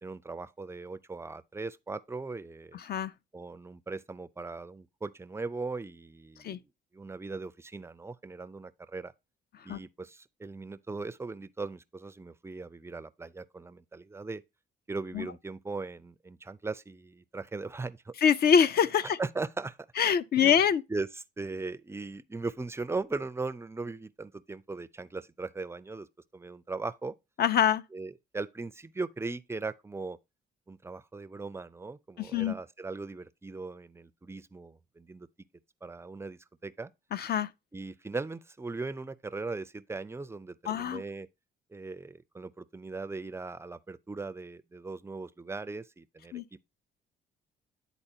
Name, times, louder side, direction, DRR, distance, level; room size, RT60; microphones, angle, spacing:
voice 1, 0.0-2.8 3.3-6.6 6.9-9.1 9.6-14.4 14.9-18.1 19.0-19.8 20.4-20.5 20.9-26.1 26.3-27.1 27.9-30.2 30.7-35.3 35.8-36.9 37.7-41.3 41.7-46.6, right 3 dB, 15° right, 0.4 m, -39 dB
voice 2, 2.7-3.1 6.4-6.6 9.7-9.8 15.1-15.3 18.2-19.2 20.0-20.8 27.4-27.8 32.2-32.5 37.1-37.5 40.7-41.0 46.3-46.4, left 8 dB, 55° left, 0.5 m, -24 dB
10.0 x 4.1 x 2.7 m
cardioid pair, 90°, 20 cm